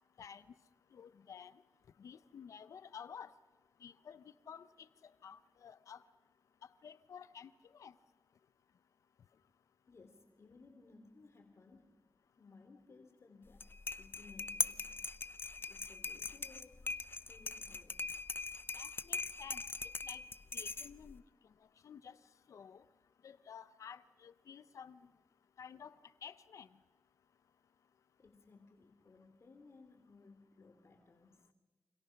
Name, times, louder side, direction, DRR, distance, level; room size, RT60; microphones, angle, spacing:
voice 1, 0.9-1.5 2.0-3.3 3.8-6.0 6.8-7.9 18.7-19.6 20.0-20.2 20.5-21.2 21.8-22.2 22.5-22.8 23.2-25.0 25.6-25.9 26.2-26.7, left 7 dB, 85° left, 15 dB, 0.7 m, -52 dB
voice 2, 9.9-12.0 12.3-13.6 13.9-15.1 15.7-16.9 17.2-18.1 28.2-31.5, left 3 dB, 60° left, 5 dB, 3.2 m, -60 dB
sound 1, 13.5-21.2, left 3 dB, 45° left, 0.8 m, -41 dB
29.0 x 26.5 x 5.9 m, 1.3 s
cardioid pair, 50°, 5 cm